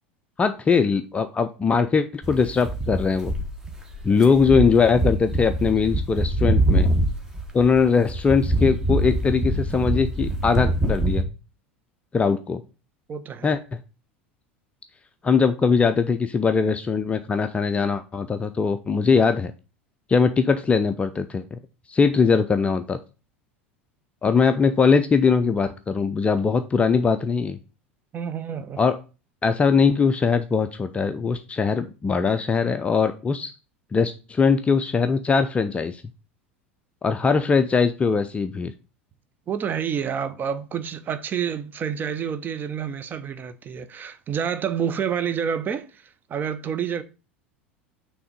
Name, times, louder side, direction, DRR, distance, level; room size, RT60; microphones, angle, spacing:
voice 1, 0.4-3.3 4.0-6.9 7.5-11.2 12.1-12.6 13.4-13.6 15.2-19.5 20.1-21.6 21.9-23.0 24.2-27.6 28.8-29.0 29.4-33.5 33.9-36.0 37.0-38.7, left 5 dB, 20° left, 0.4 m, -21 dB
sound 1, 2.2-11.2, right 1 dB, 10° right, 1.1 m, -24 dB
voice 2, 13.1-13.5 28.1-28.8 39.5-47.0, right 7 dB, 30° right, 0.7 m, -29 dB
5.9 x 3.4 x 5.2 m
figure-of-eight pair, 80°, 7 cm